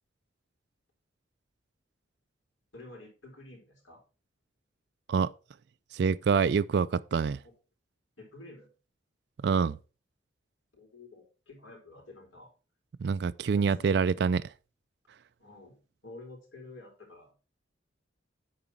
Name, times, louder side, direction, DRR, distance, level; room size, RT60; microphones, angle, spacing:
voice 1, 2.7-4.0 7.4-7.5 8.2-8.7 10.7-12.5 13.5-14.0 15.4-17.3, left 2 dB, 85° left, 4.6 m, -50 dB
voice 2, 5.9-7.4 9.4-9.8 13.0-14.5, right 5 dB, 60° right, 0.3 m, -26 dB
9.1 x 4.9 x 5.8 m
head